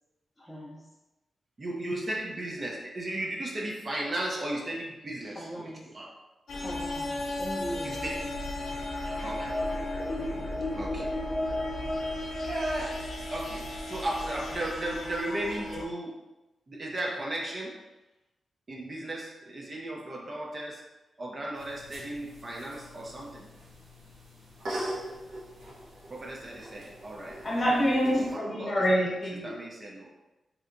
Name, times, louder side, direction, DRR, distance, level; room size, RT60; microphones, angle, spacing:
voice 1, 0.4-0.8 5.3-5.8 6.5-8.3, equal, 5° left, -8 dB, 0.6 m, -40 dB
voice 2, 1.6-6.1 7.8-8.2 9.2-9.6 10.7-11.1 12.4-13.1 13.3-16.1 16.7-17.8 18.7-20.8 21.2-23.5 26.1-27.4 28.1-29.0 29.4-30.2, right 1 dB, 35° right, -2 dB, 0.6 m, -35 dB
sound 1, 6.5-15.9, left 1 dB, 70° left, 0.6 m, -34 dB
sound 2, 21.5-28.3, right 1 dB, 75° right, 1.0 m, -42 dB
voice 3, 27.4-29.5, equal, 35° left, -4 dB, 1.0 m, -26 dB
3.2 x 2.8 x 2.5 m, 1.0 s
wide cardioid pair, 110°, 0 cm